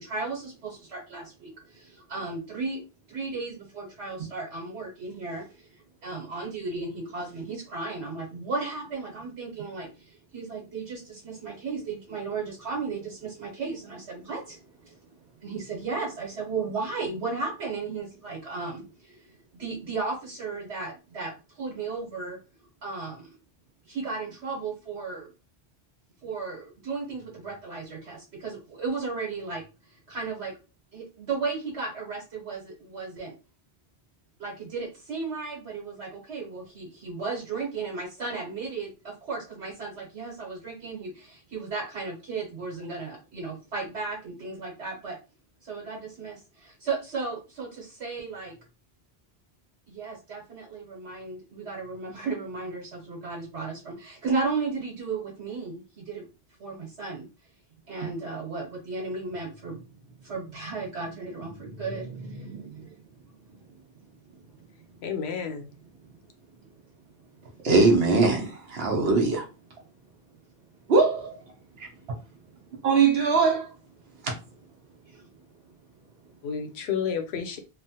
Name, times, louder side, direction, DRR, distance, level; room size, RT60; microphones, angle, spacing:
voice 1, 0.0-22.4 22.8-23.3 23.9-25.3 26.2-29.6 29.9-30.5 30.9-33.3 34.4-45.2 45.6-48.5 49.9-56.2 56.6-57.3 57.9-65.0 66.0-66.8 67.2-67.6 72.0-72.9 74.0-74.1 74.9-76.4, right 4 dB, 85° right, 1.2 m, -35 dB
voice 2, 65.0-65.7 76.4-77.6, left 7 dB, 75° left, 0.8 m, -30 dB
voice 3, 67.6-69.5 70.9-71.4 72.8-73.7 74.2-74.3, right 4 dB, 70° right, 0.9 m, -21 dB
3.0 x 2.1 x 2.7 m
omnidirectional pair, 1.1 m